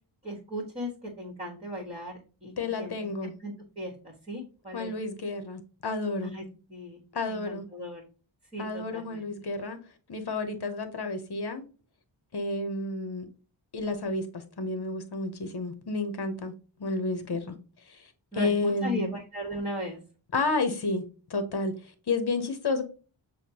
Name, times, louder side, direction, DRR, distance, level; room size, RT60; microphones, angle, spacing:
voice 1, 0.2-2.5 2.8-3.1 3.4-4.9 6.2-6.4 6.7-7.0 7.3-8.0 8.5-9.2 18.3-20.0, equal, 15° right, 1.5 m, -36 dB
voice 2, 2.6-3.3 4.7-6.3 7.1-7.6 8.6-9.8 10.1-11.6 12.3-13.3 13.7-16.5 16.8-17.6 17.9-19.1 20.3-21.0 21.3-21.7 22.1-22.8, left 3 dB, 55° left, 0.9 m, -31 dB
6.4 x 2.3 x 2.8 m
wide cardioid pair, 55°, 47 cm